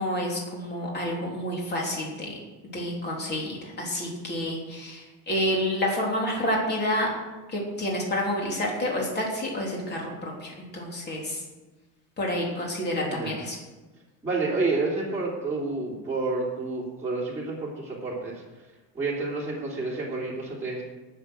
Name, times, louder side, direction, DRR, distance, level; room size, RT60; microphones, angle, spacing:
voice 1, 0.0-2.4 2.7-7.1 7.5-11.4 12.2-13.6, left 1 dB, 25° left, -2 dB, 3.5 m, -29 dB
voice 2, 14.2-18.4 18.9-20.8, right 3 dB, 5° right, -6 dB, 2.9 m, -29 dB
18.5 x 6.9 x 6.4 m, 1.2 s
cardioid pair, 170°, 40 cm